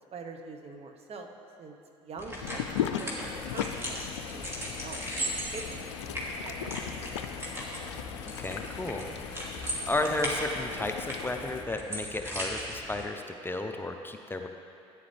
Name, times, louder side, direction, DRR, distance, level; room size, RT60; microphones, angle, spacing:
voice 1, 0.1-1.3 1.6-2.7 3.0-6.0 6.4-7.1, right 4 dB, 45° right, 4 dB, 1.1 m, -45 dB
sound 1, 2.2-13.0, equal, 20° right, 2.8 m, -38 dB
sound 2, 2.4-11.4, left 9 dB, 90° left, 0.4 m, -38 dB
sound 3, 3.2-11.6, left 7 dB, 65° left, 1.0 m, -45 dB
voice 2, 8.4-9.1 9.9-14.5, left 2 dB, 15° left, 4 dB, 0.7 m, -33 dB
13.5 x 9.9 x 3.4 m, 2.6 s
hypercardioid pair, 65°, 15 cm